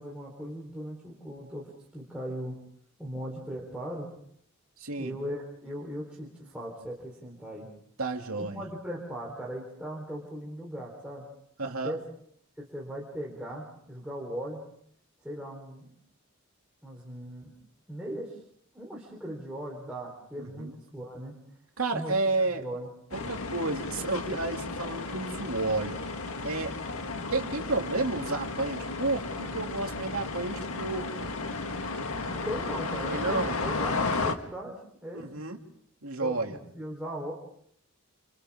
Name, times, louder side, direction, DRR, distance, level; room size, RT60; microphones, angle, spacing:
voice 1, 0.0-2.6 3.0-4.1 5.0-7.7 8.4-11.2 11.6-12.0 12.6-14.6 15.2-15.9 16.8-17.5 17.9-18.4 18.7-21.3 21.9-22.2 22.6-22.9 32.3-35.3 36.2-37.3, equal, 5° right, -4 dB, 4.1 m, -38 dB
voice 2, 4.8-5.1 8.0-8.6 11.6-12.0 20.4-20.8 21.8-22.6 23.1-26.0 26.4-26.7 27.3-31.1 33.1-33.5 35.1-35.6 36.0-36.6, right 3 dB, 85° right, 3 dB, 2.8 m, -31 dB
sound 1, 23.1-34.3, left 3 dB, 85° left, 1.7 m, -33 dB
29.5 x 29.0 x 3.7 m, 0.67 s
head